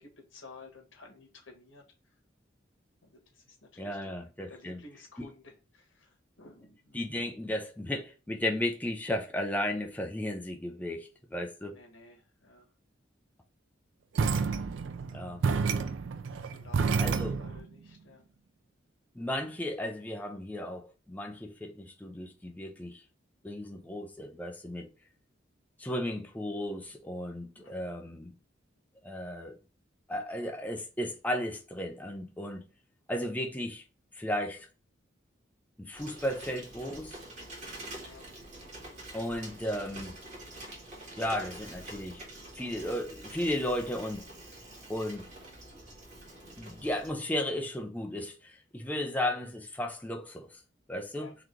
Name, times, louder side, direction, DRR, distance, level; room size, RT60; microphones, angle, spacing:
voice 1, 0.0-1.8 3.0-4.1 4.5-7.0 11.7-12.7 15.0-15.3 16.4-18.2 27.5-27.9 36.1-36.2 37.9-38.3 51.1-51.4, left 3 dB, 90° left, 1.4 m, -54 dB
voice 2, 3.8-4.8 5.2-5.3 6.9-11.8 15.1-15.4 17.0-17.4 19.2-23.0 23.4-24.9 25.8-28.3 29.0-29.6 30.1-32.6 33.1-33.8 34.1-34.7 35.8-37.2 39.1-40.2 41.2-42.2 42.6-44.2 44.9-45.3 46.4-50.6 50.9-51.3, left 1 dB, 10° left, 0.5 m, -34 dB
sound 1, 14.2-17.7, right 5 dB, 75° right, 0.4 m, -29 dB
Bicycle, 35.9-47.1, right 1 dB, 40° right, 1.6 m, -46 dB
3.9 x 2.9 x 3.1 m
head